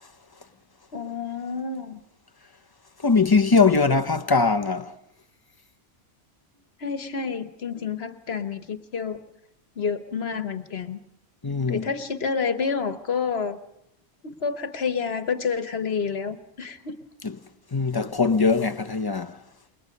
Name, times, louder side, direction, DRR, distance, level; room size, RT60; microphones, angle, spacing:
voice 1, 0.9-2.0 6.8-9.2 9.8-11.0 11.7-13.6 14.2-16.9, left 5 dB, 65° left, 1.4 m, -29 dB
voice 2, 3.0-4.9 11.4-11.9 17.2-17.4 17.7-19.4, left 4 dB, 25° left, 0.8 m, -21 dB
28.5 x 22.0 x 5.3 m
omnidirectional pair, 1.1 m